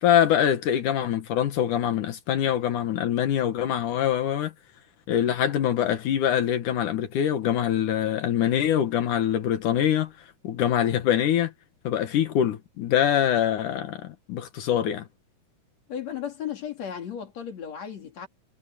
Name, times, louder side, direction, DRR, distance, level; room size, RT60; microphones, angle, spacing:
voice 1, 0.0-4.5 5.1-10.1 10.4-11.5 11.8-15.0, left 10 dB, 75° left, 2.9 m, -24 dB
voice 2, 15.9-18.3, left 8 dB, 55° left, 3.9 m, -35 dB
omnidirectional pair, 3.6 m